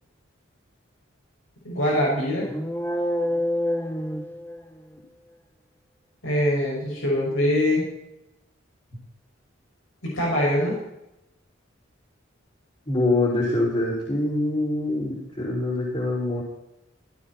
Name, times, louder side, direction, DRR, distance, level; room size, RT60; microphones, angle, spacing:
voice 1, 1.6-2.5 6.2-7.9 10.0-10.8, left 1 dB, 85° left, -3 dB, 6.0 m, -23 dB
sound 1, 2.4-5.0, equal, 10° left, 0.8 m, -27 dB
voice 2, 12.9-16.4, left 2 dB, 30° left, -8 dB, 5.2 m, -24 dB
16.5 x 16.0 x 4.3 m, 0.86 s
head